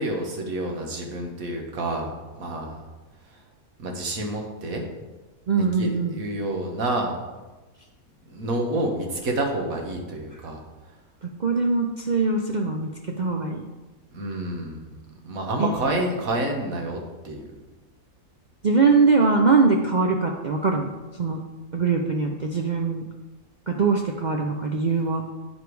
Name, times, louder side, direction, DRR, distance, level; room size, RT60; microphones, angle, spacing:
voice 1, 0.0-2.9 3.3-3.4 3.8-4.8 5.6-7.2 8.3-10.6 14.1-14.9 15.2-17.4, right 1 dB, 65° right, 2 dB, 1.6 m, -29 dB
voice 2, 5.5-6.2 11.4-12.9 13.2-13.6 15.6-15.7 18.6-20.9 21.2-21.4 21.7-23.0 23.7-25.2, right 4 dB, 85° right, 2 dB, 0.4 m, -22 dB
8.9 x 5.1 x 4.7 m, 1.2 s
omnidirectional pair, 1.6 m